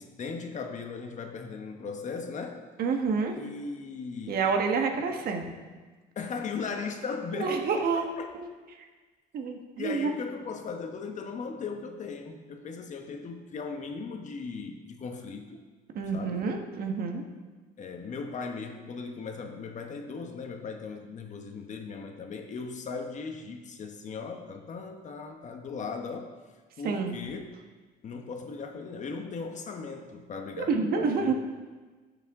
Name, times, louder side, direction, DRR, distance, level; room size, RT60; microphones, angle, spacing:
voice 1, 0.0-2.6 3.3-4.4 4.9-5.5 6.2-8.3 9.8-15.6 16.1-16.5 17.8-26.3 26.8-27.4 28.0-31.3, left 4 dB, 45° left, 4 dB, 1.1 m, -38 dB
voice 2, 2.8-3.4 4.3-5.4 7.3-8.0 8.3-8.5 9.3-10.1 15.9-17.2 26.8-27.2 30.6-31.3, right 5 dB, 60° right, 3 dB, 1.4 m, -28 dB
14.0 x 6.9 x 3.7 m, 1.4 s
cardioid pair, 110°, 17 cm